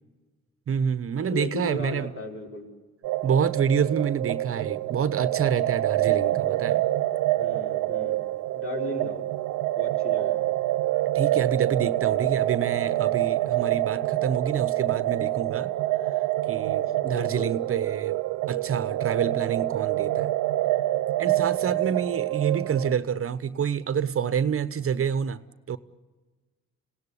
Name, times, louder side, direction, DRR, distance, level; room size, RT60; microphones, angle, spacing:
voice 1, 0.7-2.1 3.2-6.9 11.1-15.7 16.5-18.2 18.5-20.3 21.2-25.4 25.7-25.8, right 7 dB, 45° right, 1.1 m, -27 dB
voice 2, 1.3-2.7 6.1-6.4 7.3-8.2 8.5-9.2 9.8-10.4 17.0-17.5 21.7-21.9, left 2 dB, 45° left, 5.5 m, -36 dB
sound 1, 3.0-22.9, right 15 dB, 85° right, 0.8 m, -26 dB
26.0 x 18.0 x 10.0 m
cardioid pair, 90°, 30 cm